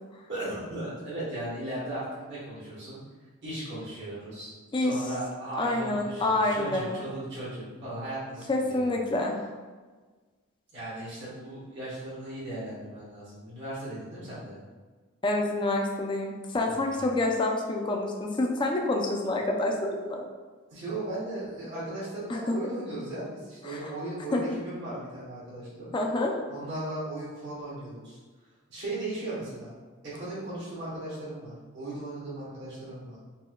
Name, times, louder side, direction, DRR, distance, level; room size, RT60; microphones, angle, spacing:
voice 1, 0.3-3.0 3.4-4.5 4.8-8.9 10.7-14.6 16.6-17.1 20.7-25.9 26.5-28.2 28.7-29.7 30.0-33.2, right 1 dB, 55° right, -9 dB, 1.2 m, -37 dB
voice 2, 5.6-7.0 8.5-9.4 15.2-20.3 22.3-22.4 23.6-23.9 24.3-24.4 25.9-26.3, left 2 dB, 20° left, 1 dB, 0.3 m, -27 dB
4.3 x 2.1 x 2.2 m, 1.4 s
head